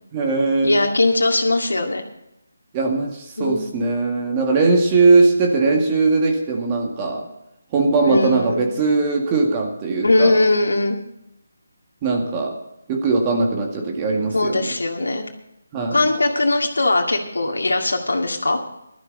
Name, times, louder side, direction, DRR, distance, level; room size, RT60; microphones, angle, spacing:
voice 1, 0.1-0.8 2.7-7.3 7.7-10.4 12.0-12.6 12.9-14.7 15.7-16.0, right 3 dB, 25° right, 1 dB, 2.0 m, -20 dB
voice 2, 0.6-2.0 3.4-3.7 8.0-8.6 10.0-11.0 14.3-15.2 15.9-18.6, left 2 dB, 85° left, 1 dB, 2.2 m, -20 dB
15.5 x 13.0 x 4.0 m, 0.84 s
figure-of-eight pair, 160°, 0 cm